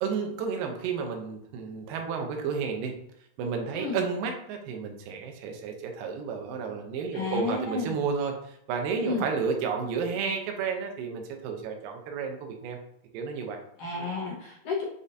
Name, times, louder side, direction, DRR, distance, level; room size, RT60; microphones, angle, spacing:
voice 1, 0.0-3.0 3.4-12.8 13.1-13.6, right 5 dB, 85° right, 3 dB, 2.4 m, -31 dB
voice 2, 7.1-7.9 9.0-9.3 13.8-14.8, left 4 dB, 65° left, -5 dB, 1.6 m, -31 dB
6.9 x 2.5 x 2.7 m, 0.74 s
omnidirectional pair, 3.9 m